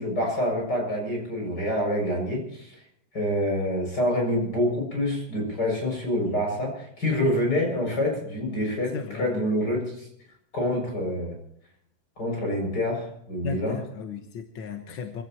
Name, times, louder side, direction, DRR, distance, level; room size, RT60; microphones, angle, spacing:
voice 1, 0.0-2.8 3.1-10.1 10.5-11.4 12.2-13.8, left 1 dB, 30° left, 0 dB, 7.4 m, -27 dB
voice 2, 8.9-9.4 13.4-15.2, left 6 dB, 55° left, 4 dB, 1.5 m, -35 dB
26.0 x 16.0 x 3.0 m, 0.71 s
omnidirectional pair, 3.6 m